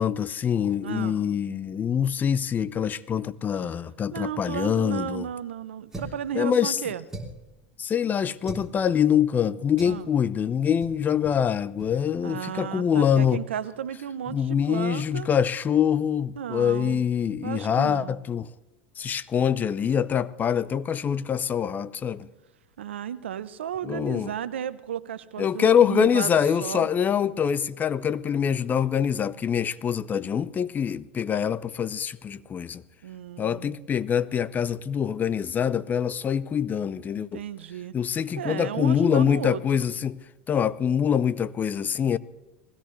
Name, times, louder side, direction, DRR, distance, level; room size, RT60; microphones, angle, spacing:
voice 1, 0.0-5.3 6.3-6.8 7.8-13.4 14.3-18.5 19.0-22.3 23.8-24.3 25.4-32.8 33.4-37.4 37.9-40.2 40.5-42.2, left 8 dB, 30° left, 0.7 m, -25 dB
voice 2, 0.8-1.2 4.1-7.0 9.8-10.1 12.2-15.3 16.4-17.0 17.4-18.2 22.8-26.3 26.6-26.9 33.0-33.8 37.3-37.9 38.4-39.9, right 9 dB, 80° right, 0.8 m, -34 dB
sound 1, 5.9-6.3 7.1-7.5 8.4-8.7 9.8-10.0 10.8-11.0 11.2-11.4 11.8-11.9, right 1 dB, 10° right, 3.3 m, -39 dB
20.5 x 16.5 x 3.2 m
hypercardioid pair, 90°, 6 cm